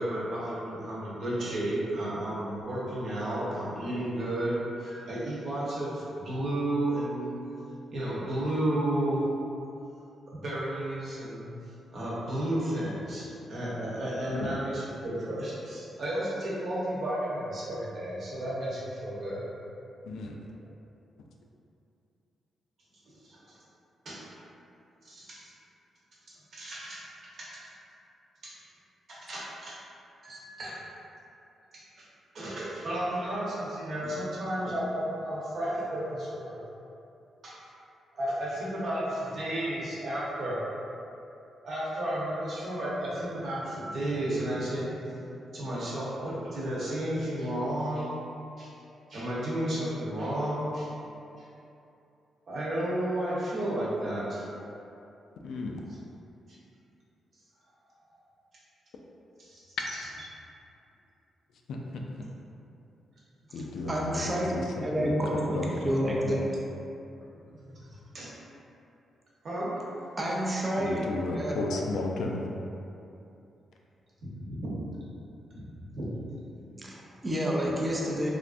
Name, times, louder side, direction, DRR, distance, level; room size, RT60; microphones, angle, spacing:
voice 1, 0.0-7.3 7.9-9.2 10.3-11.5 11.9-19.4 23.2-23.6 24.0-24.2 25.0-25.5 26.5-27.6 28.4-28.6 29.1-29.8 30.2-30.8 31.7-32.0 32.3-36.6 37.4-37.6 38.1-40.6 41.6-45.2 45.5-48.2 48.6-48.7 49.1-50.9 51.4-51.5 52.5-54.4 59.4-59.6 67.6-68.3 69.4-69.8 74.2-74.7 75.5-75.6 75.9-76.1 76.5-76.8, right 1 dB, 55° right, -8 dB, 0.9 m, -32 dB
voice 2, 20.0-20.4 55.4-55.8 61.7-62.3 63.5-66.4 70.8-72.5 77.7-77.8, left 2 dB, 80° left, 0 dB, 0.3 m, -34 dB
voice 3, 63.9-66.5 70.2-71.6 76.8-78.3, equal, 20° right, -3 dB, 0.4 m, -29 dB
3.3 x 2.5 x 2.4 m, 2.7 s
cardioid pair, 140°, 0 cm